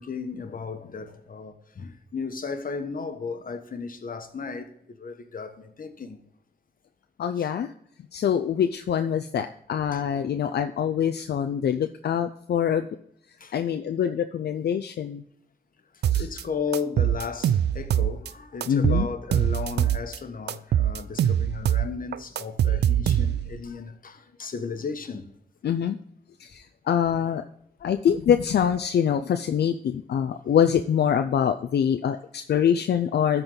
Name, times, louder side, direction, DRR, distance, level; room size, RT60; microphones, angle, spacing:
voice 1, 0.0-4.7 5.0-6.2 7.4-7.5 9.9-10.0 13.4-13.5 16.2-25.3, left 5 dB, 55° left, 1.2 m, -35 dB
voice 2, 7.2-7.7 8.1-12.9 13.5-15.2 16.1-16.3 18.7-19.1 25.6-26.0 26.4-27.4 27.8-33.4, left 8 dB, 80° left, 0.5 m, -24 dB
sound 1, 16.0-16.4 16.7-18.3 18.6-20.2 20.5-23.6, right 10 dB, 90° right, 0.4 m, -23 dB
13.0 x 4.5 x 3.8 m
cardioid pair, 70°, 17 cm